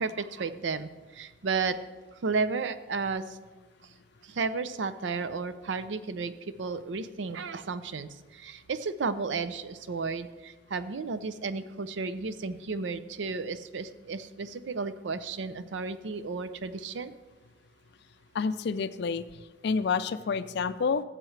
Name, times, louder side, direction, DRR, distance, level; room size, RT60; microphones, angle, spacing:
voice 1, 0.0-1.8 2.1-3.4 3.8-3.9 4.2-17.1, right 4 dB, 70° right, 13 dB, 0.5 m, -33 dB
voice 2, 18.3-19.2 19.6-21.0, left 5 dB, 65° left, 14 dB, 0.4 m, -28 dB
15.0 x 7.5 x 3.2 m, 1.2 s
head